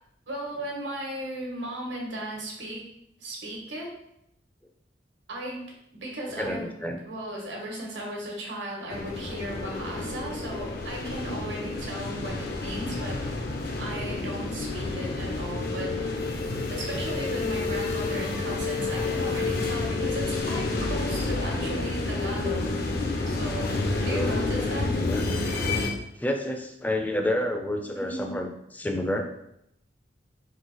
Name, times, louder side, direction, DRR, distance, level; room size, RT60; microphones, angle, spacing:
voice 1, 0.3-2.8 3.2-4.0 5.3-5.6 6.0-13.2 13.8-16.1 16.6-22.8 23.1-23.8 24.0-24.9 28.0-28.3, right 1 dB, 85° right, -1 dB, 1.2 m, -36 dB
voice 2, 6.4-7.0 24.1-24.3 25.0-25.3 26.2-29.2, left 1 dB, 10° left, 3 dB, 0.4 m, -29 dB
sound 1, 8.9-25.9, left 3 dB, 60° left, 0.6 m, -29 dB
3.8 x 2.7 x 4.0 m, 0.78 s
head